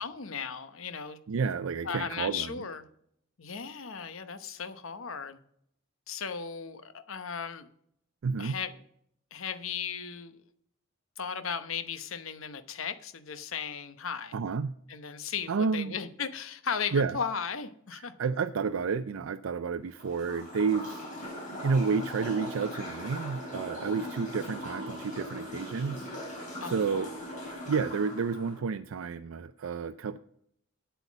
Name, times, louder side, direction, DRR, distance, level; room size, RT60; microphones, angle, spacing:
voice 1, 0.0-1.2 1.8-2.9 3.4-5.4 6.1-7.7 8.4-8.7 9.3-10.4 11.2-14.3 14.9-18.1 26.6-27.1, left 6 dB, 80° left, 12 dB, 0.9 m, -36 dB
voice 2, 1.3-2.6 8.2-8.6 14.3-14.7 15.5-15.9 16.9-17.2 18.2-21.0 21.6-26.4 26.6-27.1 27.7-30.2, right 5 dB, 80° right, 10 dB, 0.4 m, -30 dB
sound 1, 19.9-28.6, equal, 40° left, 4.5 m, -40 dB
8.2 x 8.0 x 7.2 m, 0.70 s
head